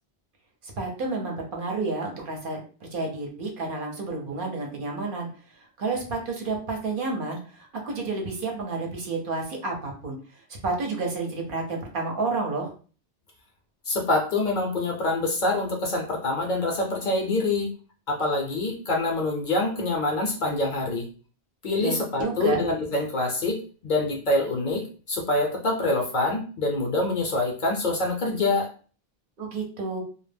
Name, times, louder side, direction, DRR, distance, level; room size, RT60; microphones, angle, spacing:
voice 1, 0.8-5.3 5.5-12.7 21.8-22.6 29.4-30.0, right 3 dB, 60° right, 0 dB, 0.8 m, -30 dB
voice 2, 13.9-17.7 18.1-21.1 21.6-28.7, left 2 dB, 55° left, 1 dB, 0.6 m, -25 dB
2.1 x 2.1 x 3.3 m, 0.39 s
omnidirectional pair, 1.1 m